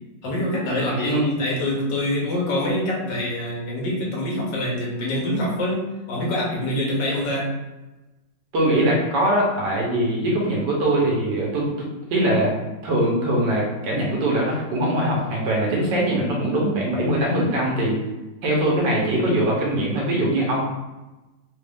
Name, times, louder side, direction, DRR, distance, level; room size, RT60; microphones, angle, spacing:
voice 1, 0.2-7.6, left 1 dB, 75° left, -3 dB, 1.6 m, -25 dB
voice 2, 1.0-1.3 8.5-11.7 12.1-12.5 12.8-17.9 18.4-20.6, right 1 dB, 70° right, -3 dB, 1.6 m, -22 dB
3.8 x 2.5 x 3.4 m, 1.1 s
omnidirectional pair, 2.0 m